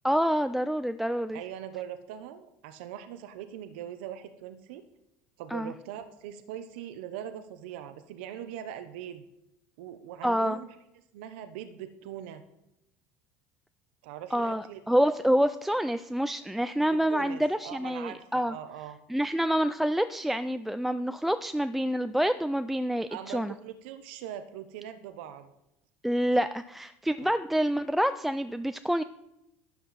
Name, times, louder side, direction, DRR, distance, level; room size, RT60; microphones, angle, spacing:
voice 1, 0.0-1.4 5.5-5.7 10.2-10.6 14.3-18.5 19.1-23.5 26.0-29.0, equal, 5° right, 11 dB, 0.3 m, -27 dB
voice 2, 1.3-4.8 5.4-9.2 9.8-10.7 11.1-12.4 14.0-14.8 17.1-19.0 23.1-25.5 27.2-27.3, right 10 dB, 90° right, 10 dB, 0.8 m, -41 dB
12.0 x 9.4 x 4.2 m, 0.88 s
cardioid pair, 130°, 6 cm